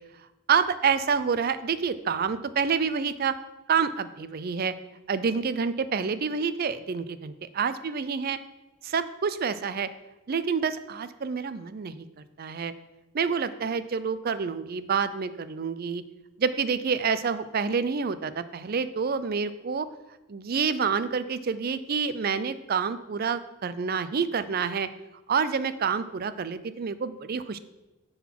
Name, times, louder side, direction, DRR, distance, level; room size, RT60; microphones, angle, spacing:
voice 1, 0.5-3.4 3.7-4.7 5.1-8.4 8.8-9.9 10.3-12.1 12.4-12.7 13.1-16.0 16.4-19.9 20.3-24.9 25.3-27.6, right 6 dB, 45° right, 14 dB, 0.4 m, -28 dB
9.4 x 3.9 x 5.9 m, 1.1 s
head